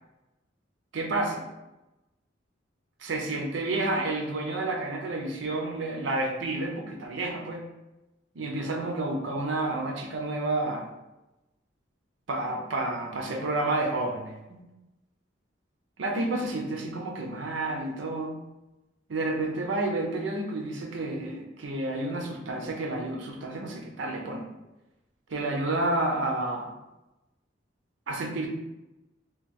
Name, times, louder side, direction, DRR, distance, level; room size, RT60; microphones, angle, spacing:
voice 1, 0.9-1.5 3.0-7.6 8.3-10.9 12.3-14.6 16.0-18.4 19.1-24.5 25.3-26.7 28.1-28.5, right 2 dB, 75° right, 2 dB, 0.6 m, -30 dB
3.0 x 2.2 x 3.7 m, 0.99 s
head